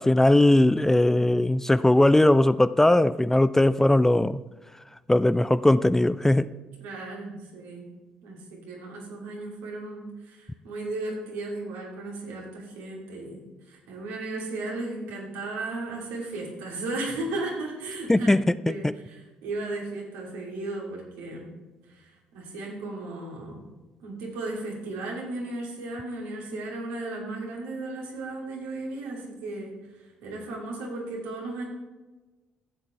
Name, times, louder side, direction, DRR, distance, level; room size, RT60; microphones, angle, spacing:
voice 1, 0.0-4.4 5.1-6.5 18.1-18.9, left 1 dB, 10° left, 15 dB, 0.3 m, -20 dB
voice 2, 6.8-7.9 8.2-18.3 18.6-21.5 21.9-23.7 24.0-31.6, right 2 dB, 75° right, -2 dB, 2.8 m, -35 dB
11.5 x 7.9 x 3.2 m, 1.2 s
hypercardioid pair, 55°, 4 cm